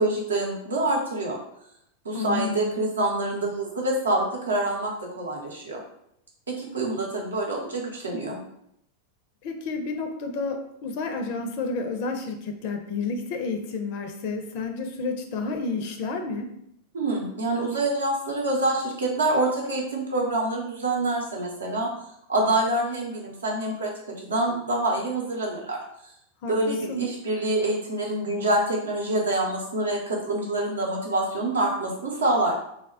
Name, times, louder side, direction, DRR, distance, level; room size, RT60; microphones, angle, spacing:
voice 1, 0.0-1.4 2.0-5.8 6.5-8.4 16.9-21.9 22.3-25.8 26.5-32.5, right 2 dB, 70° right, -1 dB, 0.7 m, -26 dB
voice 2, 2.1-2.8 9.4-16.5 26.4-26.6 26.9-27.1, left 4 dB, 45° left, 5 dB, 0.4 m, -30 dB
2.2 x 2.1 x 3.4 m, 0.76 s
figure-of-eight pair, 90°, 0 cm